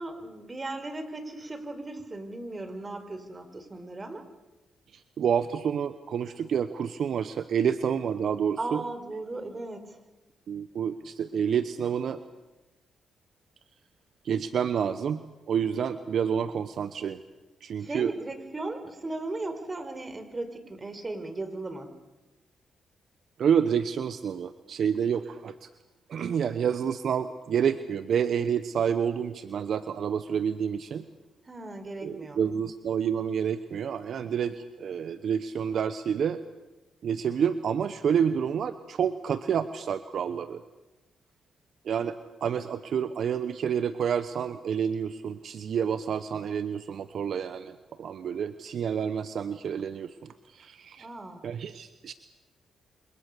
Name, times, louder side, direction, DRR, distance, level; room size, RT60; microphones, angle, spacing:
voice 1, 0.0-4.3 8.6-10.0 17.8-21.9 31.5-32.4 51.0-51.5, right 2 dB, 30° right, 9 dB, 4.9 m, -37 dB
voice 2, 4.9-8.8 10.5-12.2 14.2-15.2 15.5-17.2 17.6-18.1 23.4-25.5 26.1-31.0 32.0-36.4 37.0-40.6 41.8-42.2 42.4-50.1 50.5-51.1 51.4-52.1, right 7 dB, 70° right, 12 dB, 1.0 m, -28 dB
28.0 x 25.5 x 6.9 m, 1.1 s
supercardioid pair, 60°, 0 cm